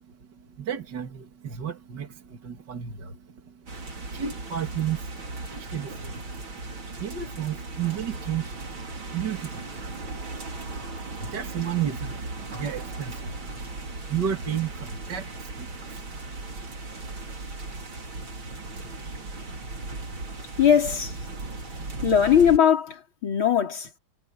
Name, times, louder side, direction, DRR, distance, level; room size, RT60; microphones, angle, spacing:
voice 1, 0.1-16.1 16.4-16.5, right 9 dB, 55° right, 2.8 m, -34 dB
sound 1, 3.7-22.6, right 3 dB, 75° right, 4.6 m, -37 dB
voice 2, 20.6-21.1 22.0-24.0, left 8 dB, 75° left, 4.5 m, -20 dB
omnidirectional pair, 2.2 m